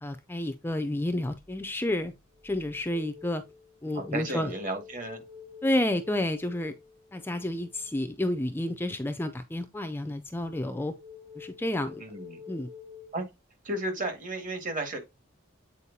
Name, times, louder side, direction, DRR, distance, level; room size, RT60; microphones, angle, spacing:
voice 1, 0.0-2.1 2.4-3.4 3.8-4.5 5.6-6.7 7.1-10.9 11.4-12.0 12.5-12.7, left 1 dB, 10° left, 0.4 m, -30 dB
sound 1, 1.4-1.6 2.1-7.9 10.4-13.1, left 7 dB, 60° right, 3.5 m, -49 dB
voice 2, 3.9-5.2 12.0-12.4 13.1-13.2 13.6-15.0, right 2 dB, 40° right, 2.1 m, -33 dB
8.3 x 4.5 x 2.8 m
head